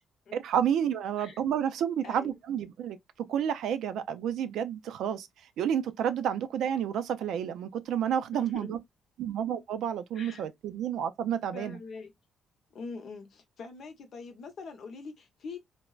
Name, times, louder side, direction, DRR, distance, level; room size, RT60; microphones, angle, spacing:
voice 1, 0.3-3.0 3.3-5.3 5.6-8.8 9.2-11.8, right 9 dB, 80° right, 0.4 m, -30 dB
voice 2, 8.3-8.7 10.1-10.4 11.5-12.1 12.7-15.6, left 4 dB, 60° left, 0.8 m, -43 dB
3.2 x 2.1 x 2.3 m
cardioid pair, 90°, 0 cm